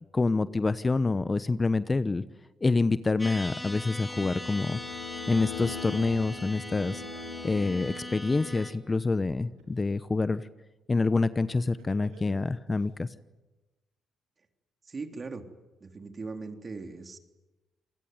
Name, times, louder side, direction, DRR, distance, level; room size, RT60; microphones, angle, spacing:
voice 1, 0.1-2.2 2.6-4.8 5.3-7.0 7.4-10.5 10.9-13.1, left 3 dB, 30° left, 14 dB, 1.0 m, -27 dB
sound 1, 3.2-8.7, left 1 dB, 10° left, 4.2 m, -40 dB
sound 2, 4.1-8.8, left 7 dB, 90° left, 3.8 m, -42 dB
Laughter, 7.9-8.0 8.4-9.9 11.7-12.9, right 6 dB, 85° right, 4.6 m, -52 dB
voice 2, 14.8-15.4 15.8-17.2, right 4 dB, 40° right, 5 dB, 3.6 m, -39 dB
27.5 x 20.0 x 9.5 m, 1.1 s
supercardioid pair, 55°, 0 cm